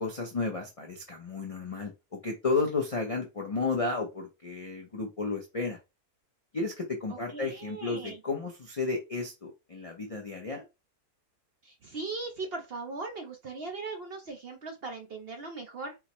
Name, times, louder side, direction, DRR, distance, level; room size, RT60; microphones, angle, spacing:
voice 1, 0.0-5.8 6.5-10.7, left 3 dB, 60° left, 1 dB, 0.3 m, -32 dB
voice 2, 7.1-8.2 11.6-16.0, right 3 dB, 55° right, 4 dB, 0.6 m, -39 dB
4.7 x 2.0 x 2.9 m, 0.25 s
omnidirectional pair, 1.6 m